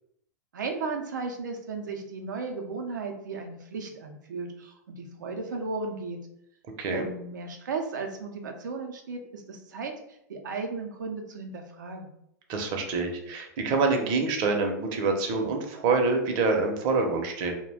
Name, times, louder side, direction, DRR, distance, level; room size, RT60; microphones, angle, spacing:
voice 1, 0.5-6.2 6.9-12.1, right 4 dB, 85° right, 3 dB, 0.5 m, -35 dB
voice 2, 12.5-17.5, right 3 dB, 50° right, 3 dB, 0.7 m, -26 dB
2.4 x 2.2 x 3.4 m, 0.77 s
hypercardioid pair, 110°, 10 cm